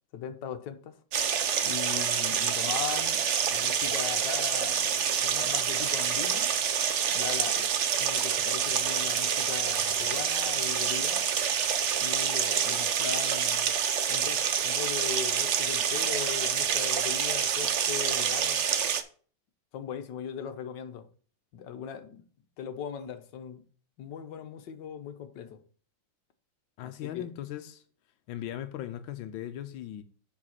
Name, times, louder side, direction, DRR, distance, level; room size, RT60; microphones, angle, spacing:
voice 1, 0.1-1.0 1.6-3.2 3.5-6.5 7.1-11.3 12.0-13.7 14.1-18.7 19.7-21.1 21.5-22.2 22.6-23.6 24.0-25.6 26.8-27.3, left 8 dB, 70° left, 1.5 m, -39 dB
sound 1, 1.1-19.0, right 7 dB, 60° right, 0.7 m, -27 dB
voice 2, 26.8-27.8 28.3-30.0, left 11 dB, 90° left, 1.4 m, -38 dB
7.4 x 4.8 x 5.8 m
omnidirectional pair, 2.1 m